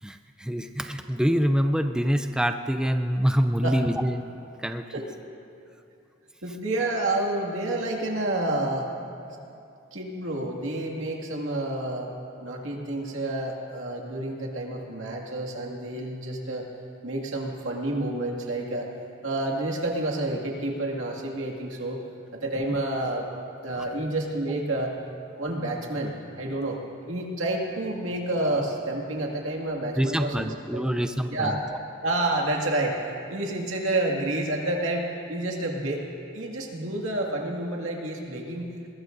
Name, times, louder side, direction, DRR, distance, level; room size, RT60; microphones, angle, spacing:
voice 1, 0.0-4.2 4.6-4.9 30.0-31.8, equal, 5° right, 7 dB, 0.4 m, -25 dB
voice 2, 6.4-8.9 9.3-9.4 9.9-12.1 12.4-16.7 17.0-18.9 19.2-22.0 22.3-23.3 23.6-25.0 25.3-26.8 27.1-30.8 31.3-31.6 32.0-36.0 36.3-38.9, right 1 dB, 85° right, -1 dB, 2.1 m, -29 dB
22.0 x 21.5 x 2.6 m, 2.6 s
head